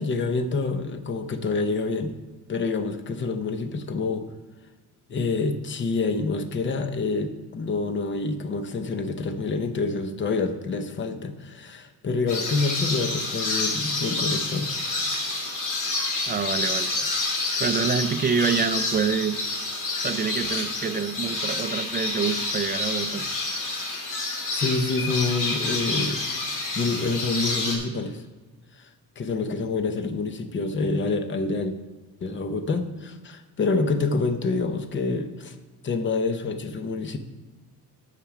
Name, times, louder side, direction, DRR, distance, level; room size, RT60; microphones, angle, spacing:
voice 1, 0.0-2.1 2.5-4.3 5.1-14.7 23.2-23.3 24.5-26.2 26.7-28.2 28.8-28.9 29.2-31.7 32.2-35.5 35.8-37.2, left 3 dB, 35° left, 8 dB, 0.7 m, -27 dB
sound 1, 12.3-27.8, left 2 dB, 60° left, 2.1 m, -28 dB
voice 2, 16.3-17.1 17.6-19.4 20.0-23.2, right 6 dB, 30° right, 10 dB, 0.4 m, -26 dB
8.8 x 6.6 x 4.8 m, 1.3 s
cardioid pair, 155°, 34 cm